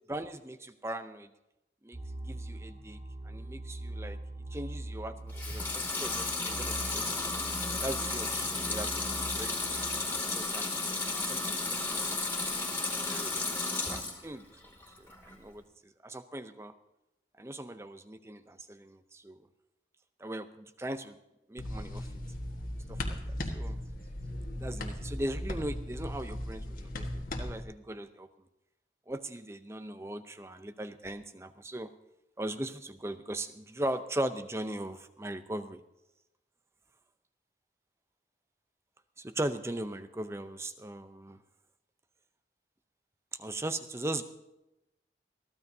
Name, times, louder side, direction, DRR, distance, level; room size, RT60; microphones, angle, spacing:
voice 1, 0.1-1.3 1.8-2.0 2.2-3.0 3.2-4.2 4.5-7.2 7.8-9.8 10.3-12.3 13.0-13.5 13.9-14.5 14.9-15.6 16.0-16.7 17.4-19.4 20.2-21.2 21.5-22.1 22.9-23.8 24.6-28.3 29.1-31.9 32.4-35.8 39.2-41.4 43.4-44.2, right 1 dB, 15° right, 10 dB, 0.6 m, -39 dB
sound 1, 1.9-10.1, right 1 dB, 45° right, 3.0 m, -42 dB
Water tap faucet / Sink (filling or washing) / Liquid, 5.3-14.2 14.6-15.4, left 3 dB, 10° left, 2.5 m, -33 dB
sound 2, 21.6-27.6, left 1 dB, 50° left, 1.5 m, -37 dB
22.5 x 15.0 x 2.8 m, 0.92 s
head